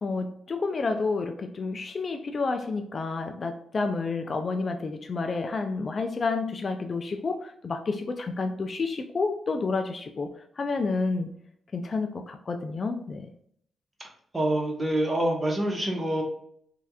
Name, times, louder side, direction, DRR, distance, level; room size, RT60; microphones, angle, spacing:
voice 1, 0.0-11.3 11.7-13.3, left 3 dB, 40° left, 6 dB, 0.3 m, -30 dB
voice 2, 14.3-16.2, right 1 dB, 20° right, 0 dB, 1.0 m, -26 dB
3.2 x 2.8 x 2.3 m, 0.66 s
cardioid pair, 100°, 0 cm